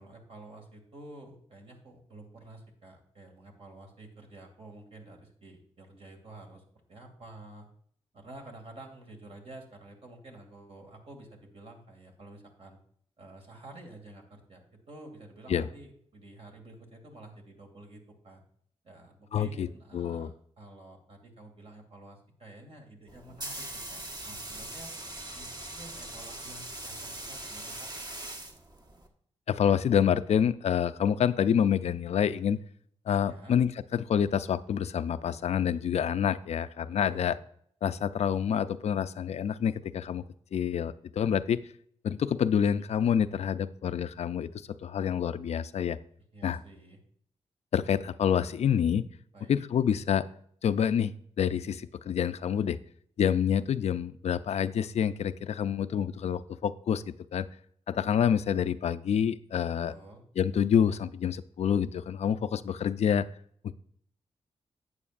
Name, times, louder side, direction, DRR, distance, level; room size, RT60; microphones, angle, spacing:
voice 1, 0.0-6.6 6.9-7.7 8.1-12.8 13.2-18.4 18.8-24.9 25.3-27.9 33.2-33.5 37.0-37.4 46.3-47.0 49.3-49.6 59.9-60.2, right 2 dB, 60° right, 2 dB, 2.3 m, -50 dB
voice 2, 19.3-19.7 19.9-20.3 29.5-32.6 33.1-37.4 37.8-40.2 40.5-41.6 42.0-44.5 44.8-46.0 46.4-46.6 47.7-49.1 49.5-50.3 50.6-52.8 53.2-57.5 57.9-59.9 60.4-63.3 63.6-63.7, left 8 dB, 70° left, 13 dB, 0.4 m, -27 dB
sound 1, 23.1-29.1, right 2 dB, 35° right, 1.3 m, -41 dB
11.0 x 8.5 x 2.5 m, 0.63 s
cardioid pair, 70°, 11 cm